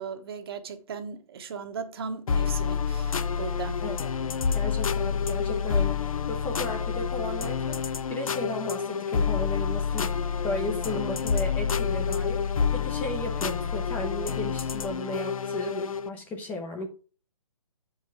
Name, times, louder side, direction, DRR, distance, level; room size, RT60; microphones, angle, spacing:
voice 1, 0.0-3.8, right 5 dB, 45° right, 1.1 m, -37 dB
sound 1, 2.3-16.1, left 6 dB, 75° left, 0.7 m, -28 dB
voice 2, 4.5-16.9, left 2 dB, 10° left, 0.6 m, -35 dB
7.8 x 4.8 x 4.6 m
hypercardioid pair, 160°, 18 cm